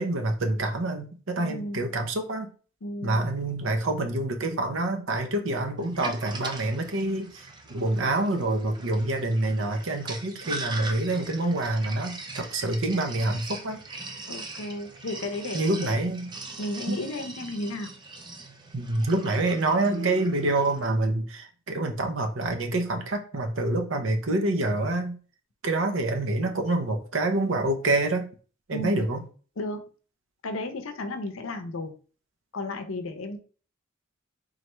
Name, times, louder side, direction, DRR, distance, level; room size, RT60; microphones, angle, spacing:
voice 1, 0.0-2.5 3.0-13.8 15.5-16.3 16.9-17.0 18.7-25.2 25.6-28.2 28.7-29.2, right 2 dB, 65° right, 5 dB, 0.7 m, -27 dB
voice 2, 1.4-1.9 2.8-3.3 14.3-16.0 16.6-17.9 28.7-29.0 29.6-29.8 30.4-31.9 32.5-33.4, left 2 dB, 75° left, 7 dB, 0.6 m, -34 dB
Sink (filling or washing), 5.8-20.8, right 3 dB, 20° right, 0.4 m, -41 dB
3.8 x 3.3 x 3.0 m, 0.39 s
head